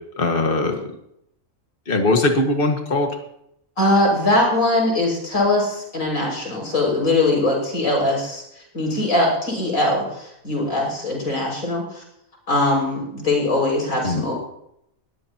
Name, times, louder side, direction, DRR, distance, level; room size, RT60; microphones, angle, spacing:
voice 1, 0.2-0.9 1.9-3.1 14.0-14.2, left 2 dB, 40° left, 3 dB, 1.9 m, -20 dB
voice 2, 3.8-12.0 12.5-14.3, left 2 dB, 85° left, -2 dB, 6.3 m, -21 dB
20.5 x 15.0 x 3.0 m, 0.77 s
omnidirectional pair, 1.4 m